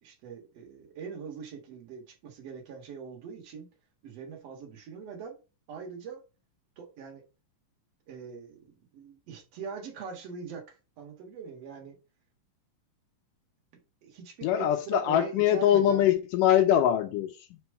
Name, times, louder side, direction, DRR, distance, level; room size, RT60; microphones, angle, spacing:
voice 1, 0.0-3.7 4.0-5.4 5.7-6.2 6.8-7.2 8.1-12.0 14.0-16.1, right 6 dB, 55° right, 2.3 m, -42 dB
voice 2, 14.4-17.6, left 11 dB, 80° left, 2.2 m, -23 dB
5.1 x 4.5 x 4.6 m
omnidirectional pair, 4.0 m